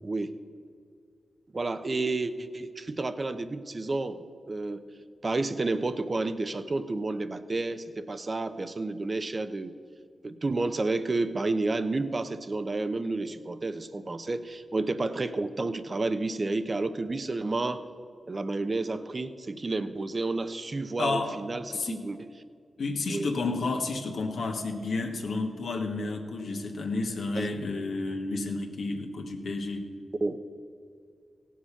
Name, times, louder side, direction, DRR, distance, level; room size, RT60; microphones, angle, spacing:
voice 1, 0.0-0.4 1.5-4.9 5.2-9.7 10.2-17.8 18.3-22.3 23.1-23.3 27.3-27.5 30.2-30.4, right 3 dB, 45° right, 11 dB, 0.8 m, -30 dB
voice 2, 21.0-21.4 21.7-22.0 22.8-29.9, left 3 dB, 80° left, 3 dB, 1.4 m, -31 dB
17.0 x 7.5 x 5.8 m, 2.3 s
cardioid pair, 50°, 0 cm